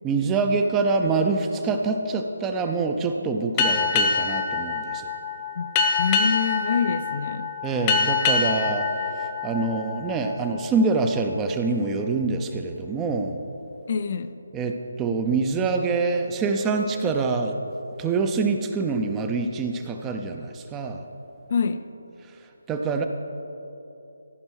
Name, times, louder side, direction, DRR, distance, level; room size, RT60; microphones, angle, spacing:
voice 1, 0.0-5.1 7.6-8.9 9.2-13.4 14.5-17.6 18.0-21.0 22.7-23.0, right 4 dB, 15° right, 5 dB, 0.6 m, -25 dB
Boat Water vehicle, 3.6-10.6, left 4 dB, 20° left, 0.8 m, -25 dB
voice 2, 6.0-7.5 13.9-14.3 21.5-21.8, left 6 dB, 45° left, 10 dB, 0.5 m, -25 dB
15.0 x 5.3 x 6.3 m, 2.9 s
figure-of-eight pair, 155°, 0 cm